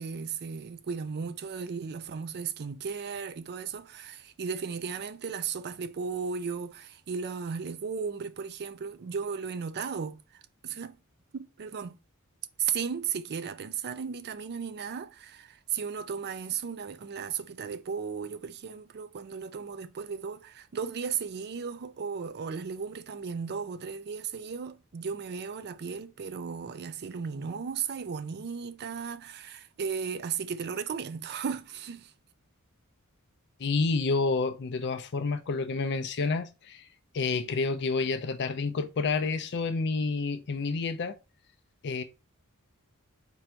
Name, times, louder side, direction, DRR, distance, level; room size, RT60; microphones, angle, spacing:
voice 1, 0.0-11.0 11.3-12.0 12.6-32.1, right 6 dB, 50° right, 0.4 m, -35 dB
voice 2, 33.6-36.9 37.1-41.2 41.8-42.0, left 4 dB, 50° left, 0.5 m, -29 dB
4.6 x 2.6 x 4.4 m
head